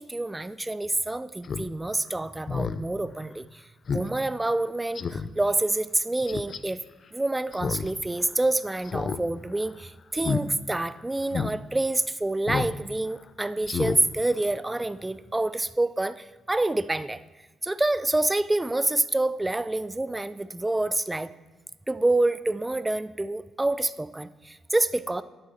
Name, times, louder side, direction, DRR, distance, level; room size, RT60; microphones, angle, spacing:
voice 1, 0.0-3.6 3.9-6.8 7.1-17.2 17.6-21.3 21.9-25.2, right 2 dB, 15° right, 15 dB, 0.4 m, -27 dB
Speech synthesizer, 1.4-1.7 2.0-2.1 2.5-2.8 3.2-3.3 3.9-4.1 4.4-4.5 4.9-5.3 6.3-6.6 7.5-7.9 8.2-8.3 8.8-9.2 9.5-9.7 10.2-10.4 10.8-10.9 11.3-11.5 12.5-12.7 13.1-13.2 13.6-14.0 14.3-14.4, left 5 dB, 50° left, 0.5 m, -30 dB
11.5 x 8.9 x 4.3 m, 1.2 s
cardioid pair, 90°, 0 cm